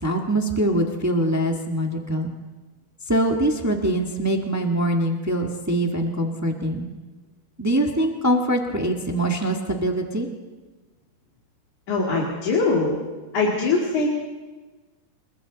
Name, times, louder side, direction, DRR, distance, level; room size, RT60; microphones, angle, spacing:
voice 1, 0.0-2.3 3.1-6.9 7.6-10.3, right 1 dB, 25° right, 2 dB, 0.3 m, -23 dB
voice 2, 11.9-13.0 13.3-14.1, left 3 dB, 65° left, -3 dB, 3.8 m, -22 dB
29.5 x 22.0 x 4.1 m, 1.3 s
omnidirectional pair, 3.8 m